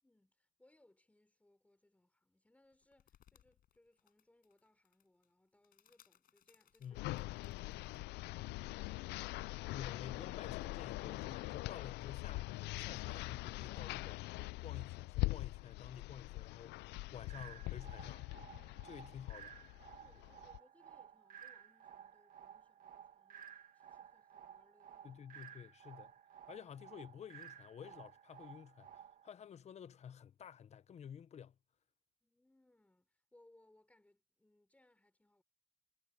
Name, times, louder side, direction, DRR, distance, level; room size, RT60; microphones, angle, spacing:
voice 1, 0.0-7.0 7.6-9.3 9.6-9.7 20.0-25.2 32.2-35.4, left 1 dB, 10° left, 5.5 m, -71 dB
sound 1, 2.7-8.0, left 11 dB, 60° left, 7.5 m, -71 dB
sound 2, 6.9-20.6, left 20 dB, 80° left, 0.5 m, -43 dB
voice 2, 9.7-12.5 12.8-14.2 14.6-18.2 18.8-19.6 25.0-26.1 26.5-31.5, left 8 dB, 40° left, 0.9 m, -52 dB
sound 3, 17.3-29.3, right 8 dB, 55° right, 1.8 m, -56 dB
cardioid pair, 110°, 17 cm